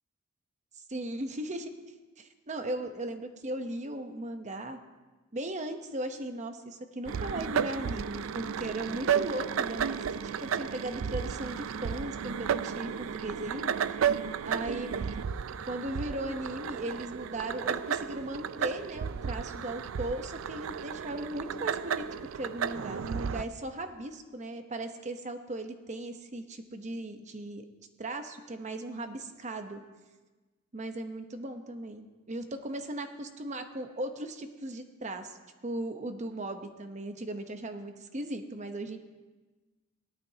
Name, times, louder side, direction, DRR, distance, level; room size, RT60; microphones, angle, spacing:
voice 1, 0.9-1.7 2.2-4.8 5.3-13.7 14.4-14.9 15.6-22.1 22.3-27.6 28.0-29.8 30.7-35.4 35.6-39.0, right 1 dB, 35° right, 7 dB, 0.9 m, -37 dB
sound 1, 7.1-23.4, right 7 dB, 85° right, 0.4 m, -33 dB
17.5 x 12.0 x 2.8 m, 1.2 s
head